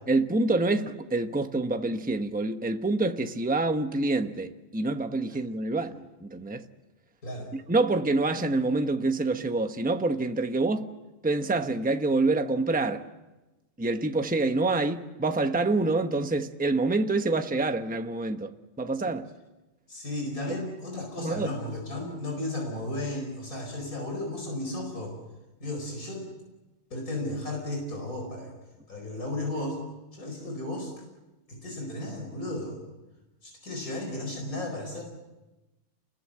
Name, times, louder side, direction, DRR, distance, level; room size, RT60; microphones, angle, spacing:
voice 1, 0.1-6.7 7.5-10.9 11.2-13.0 13.8-19.3 21.2-21.5, right 2 dB, 5° right, 0.9 m, -27 dB
voice 2, 19.9-25.2 25.6-26.3 26.9-28.5 28.9-29.8 30.1-30.9 31.5-32.8 33.4-35.0, left 1 dB, 90° left, 5.2 m, -34 dB
29.0 x 21.5 x 7.7 m
omnidirectional pair, 1.5 m